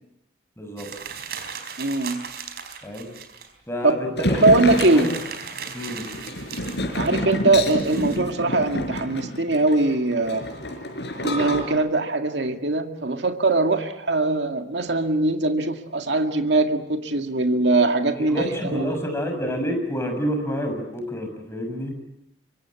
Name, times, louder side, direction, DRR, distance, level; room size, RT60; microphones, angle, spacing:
voice 1, 0.6-0.9 2.8-3.1 3.7-4.4 4.8-5.1 5.7-6.1 18.1-21.9, equal, 15° left, 4 dB, 6.1 m, -28 dB
sound 1, 0.8-3.5 3.9-4.0 4.2-8.2, right 6 dB, 65° right, 4.4 m, -37 dB
voice 2, 1.8-2.2 3.8-4.0 4.3-5.1 6.9-10.5 11.2-18.9, right 2 dB, 90° right, 5 dB, 2.0 m, -21 dB
sound 2, 4.2-11.6, left 1 dB, 75° left, 5.4 m, -28 dB
25.0 x 24.5 x 8.4 m, 0.82 s
head